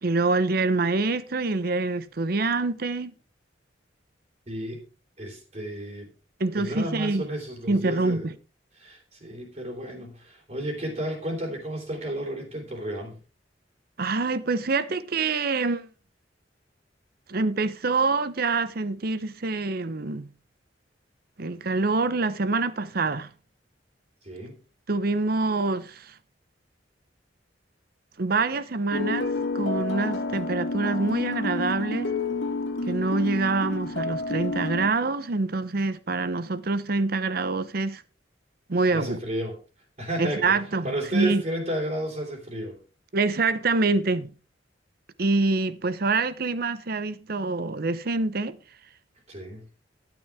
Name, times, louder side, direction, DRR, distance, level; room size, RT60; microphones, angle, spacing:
voice 1, 0.0-3.1 6.4-7.3 7.7-8.3 14.0-15.9 17.3-20.3 21.4-23.3 24.9-26.1 28.2-32.1 32.8-38.0 38.7-39.2 40.2-41.4 43.1-44.3 45.2-48.6, right 3 dB, 55° right, 0.7 m, -26 dB
voice 2, 4.5-4.8 5.2-6.1 6.5-8.3 8.8-13.2 24.2-24.6 38.9-39.6 40.0-40.6 40.8-42.8 49.3-49.7, right 1 dB, 40° right, 3.3 m, -32 dB
sound 1, 28.9-34.9, left 2 dB, 90° left, 1.6 m, -29 dB
12.5 x 9.2 x 3.6 m
head